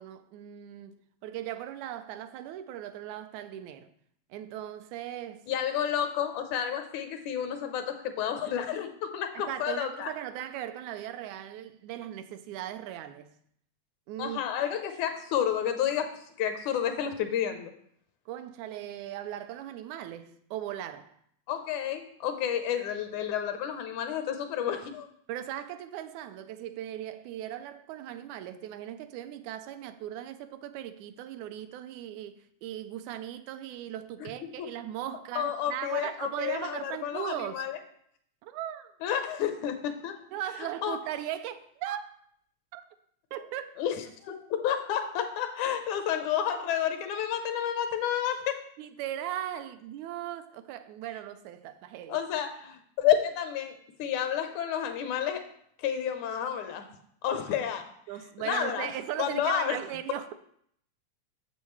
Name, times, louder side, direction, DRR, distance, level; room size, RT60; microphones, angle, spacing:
voice 1, 0.0-3.9 4.3-5.5 9.3-13.3 14.1-14.4 18.3-21.2 25.3-37.6 38.4-38.9 40.3-42.1 42.7-42.8 43.3-43.8 48.8-52.2 58.1-60.3, right 11 dB, 85° right, 2.0 m, -38 dB
voice 2, 5.5-10.1 14.2-17.7 21.5-25.1 34.2-34.7 35.4-37.8 39.0-40.2 40.8-41.0 43.8-48.6 52.1-55.5 55.8-56.9 57.2-57.9 58.4-58.9 59.2-59.8, left 9 dB, 90° left, 2.2 m, -30 dB
8.8 x 7.2 x 3.2 m
omnidirectional pair, 3.3 m